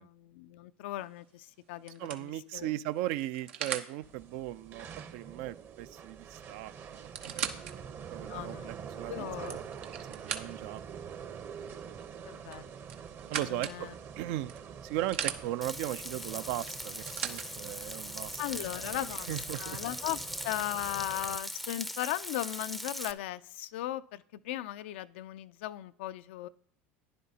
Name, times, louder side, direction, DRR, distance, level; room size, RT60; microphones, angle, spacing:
voice 1, 0.0-2.7 8.3-8.7 9.1-9.6 12.2-12.7 13.3-13.9 18.4-19.3 19.6-20.2 20.4-26.5, left 14 dB, 80° left, 14 dB, 0.4 m, -37 dB
sound 1, 1.0-1.3 1.9-3.9 6.0-6.1 6.3-6.4 6.9-7.7 8.3-8.4 9.2-10.8 12.5-13.8 14.5-15.4 16.6-17.5 18.4-18.5, right 8 dB, 85° right, 0.8 m, -39 dB
voice 2, 2.0-4.9 5.1-11.6 13.3-13.9 14.2-14.5 14.8-18.4 18.8-19.8, right 14 dB, 70° right, 15 dB, 0.4 m, -38 dB
sound 2, 4.0-21.4, right 7 dB, 40° right, 0.8 m, -46 dB
Frying (food), 15.6-23.1, equal, ahead, 0.5 m, -40 dB
11.0 x 10.5 x 2.8 m, 0.64 s
supercardioid pair, 100°, 6 cm